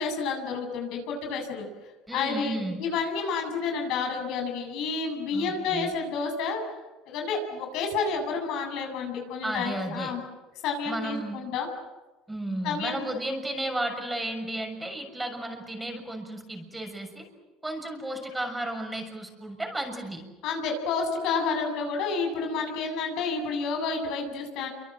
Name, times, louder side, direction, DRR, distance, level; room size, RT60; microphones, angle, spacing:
voice 1, 0.0-1.7 2.1-6.6 7.1-10.2 10.6-11.7 12.6-13.1 20.4-24.7, left 5 dB, 70° left, 3 dB, 7.8 m, -30 dB
voice 2, 2.1-2.8 5.3-5.9 9.4-10.1 10.8-11.4 12.3-17.2 17.6-20.2, right 1 dB, 10° right, 4 dB, 6.7 m, -33 dB
28.0 x 25.0 x 7.7 m, 1.1 s
supercardioid pair, 95°, 0 cm